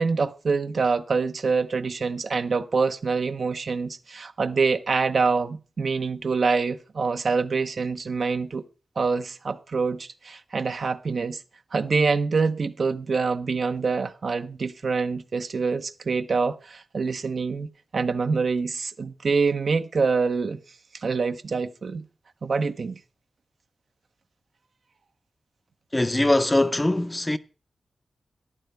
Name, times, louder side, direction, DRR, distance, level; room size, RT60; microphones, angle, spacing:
voice 1, 0.0-8.6 9.0-11.4 11.7-20.6 21.0-22.1 22.4-23.0, right 4 dB, 65° right, 0.7 m, -25 dB
voice 2, 25.9-27.4, left 1 dB, 20° left, 0.6 m, -22 dB
13.0 x 10.5 x 3.3 m
cardioid pair, 55°, 0 cm